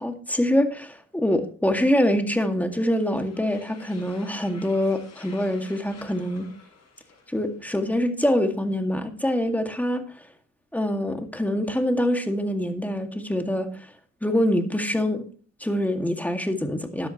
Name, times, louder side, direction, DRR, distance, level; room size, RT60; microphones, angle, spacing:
voice 1, 0.0-6.5 7.3-10.1 10.7-13.9 14.2-15.2 15.6-17.1, left 1 dB, 5° left, 5 dB, 2.0 m, -25 dB
sound 1, 2.9-7.8, left 5 dB, 60° left, 7.0 m, -49 dB
13.0 x 10.0 x 3.0 m, 0.41 s
cardioid pair, 90°, 30 cm